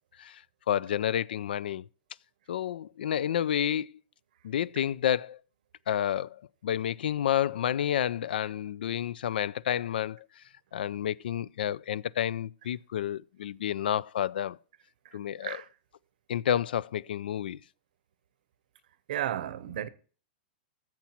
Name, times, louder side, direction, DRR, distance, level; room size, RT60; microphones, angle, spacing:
voice 1, 0.7-1.8 2.5-3.9 4.4-5.4 5.9-10.3 10.7-14.6 15.1-15.6 16.3-17.6, left 10 dB, 90° left, 0.4 m, -30 dB
voice 2, 15.0-15.7 19.1-19.9, right 11 dB, 60° right, 0.7 m, -34 dB
17.0 x 7.3 x 2.9 m
supercardioid pair, 170°, 5 cm